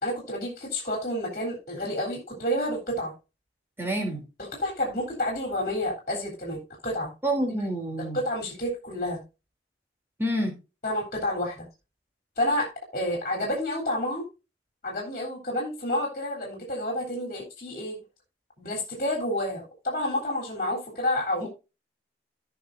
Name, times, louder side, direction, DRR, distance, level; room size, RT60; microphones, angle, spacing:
voice 1, 0.0-3.1 4.6-7.1 7.6-7.7 8.1-9.2 10.8-11.7 12.4-14.3 14.8-18.0 18.6-21.5, left 1 dB, 45° left, -1 dB, 3.4 m, -29 dB
voice 2, 3.8-4.2 7.2-8.2 10.2-10.5, right 1 dB, 15° right, 1 dB, 3.1 m, -27 dB
17.0 x 5.8 x 2.6 m, 0.28 s
head